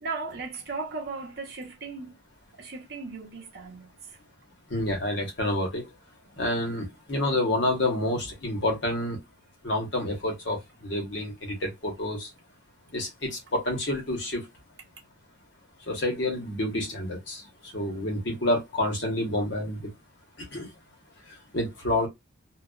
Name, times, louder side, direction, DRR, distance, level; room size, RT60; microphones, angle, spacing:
voice 1, 0.0-2.2 2.6-4.2, right 4 dB, 50° right, 0.8 m, -37 dB
voice 2, 4.7-5.9 6.4-9.2 9.6-12.3 12.9-14.5 15.9-19.9 20.4-20.7 21.3-22.1, left 1 dB, 60° left, 1.0 m, -29 dB
2.4 x 2.3 x 2.2 m
head